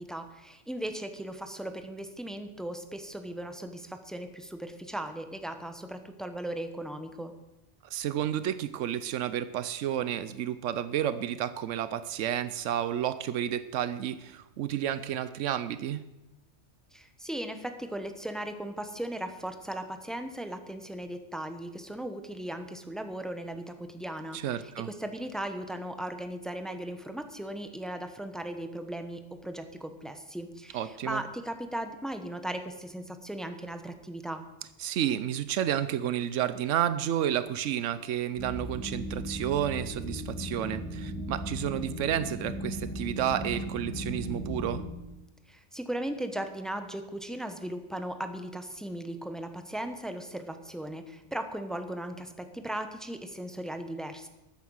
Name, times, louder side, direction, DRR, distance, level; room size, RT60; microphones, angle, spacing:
voice 1, 0.0-7.3 16.9-34.4 45.5-54.3, right 1 dB, ahead, 8 dB, 0.9 m, -37 dB
voice 2, 7.9-16.0 24.3-24.9 30.7-31.2 34.8-44.8, right 10 dB, 85° right, 13 dB, 1.0 m, -31 dB
sound 1, 38.4-44.8, equal, 25° left, 5.2 m, -37 dB
13.5 x 9.3 x 6.4 m, 0.99 s
omnidirectional pair, 1.2 m